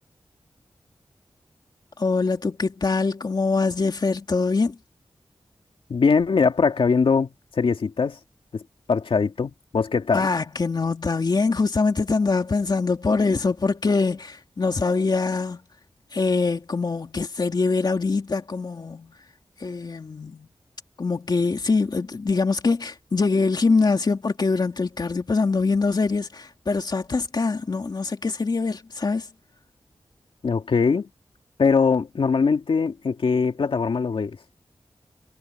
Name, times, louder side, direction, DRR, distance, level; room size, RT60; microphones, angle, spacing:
voice 1, 2.0-4.8 10.1-15.6 16.1-19.1 19.6-20.5 21.0-29.3, left 4 dB, 50° left, 2.8 m, -23 dB
voice 2, 5.9-8.2 8.5-8.6 8.9-10.3 30.4-31.1 31.6-34.4, left 5 dB, 80° left, 2.2 m, -21 dB
wide cardioid pair, 105°, 9 cm